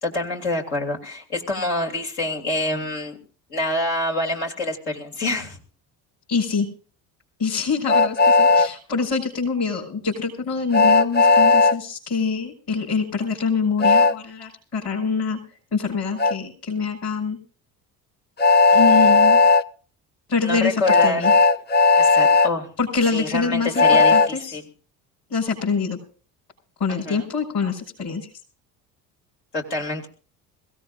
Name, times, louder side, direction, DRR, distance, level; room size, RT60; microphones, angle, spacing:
voice 1, 0.0-3.2 3.5-5.6 20.4-21.3 22.0-22.7 23.1-24.6 26.9-27.2 29.5-30.1, left 2 dB, 90° left, 0 dB, 3.0 m, -26 dB
voice 2, 6.3-6.7 7.4-15.4 15.7-17.4 18.7-19.4 20.3-21.3 22.8-24.6 25.3-26.0 26.8-28.3, left 5 dB, 50° left, -3 dB, 5.5 m, -25 dB
Train, 7.9-8.7 10.7-11.8 13.8-14.1 16.2-16.3 18.4-19.6 20.8-22.5 23.8-24.3, left 4 dB, 20° left, 0.6 m, -15 dB
23.0 x 16.5 x 2.6 m, 0.40 s
hypercardioid pair, 60°, 47 cm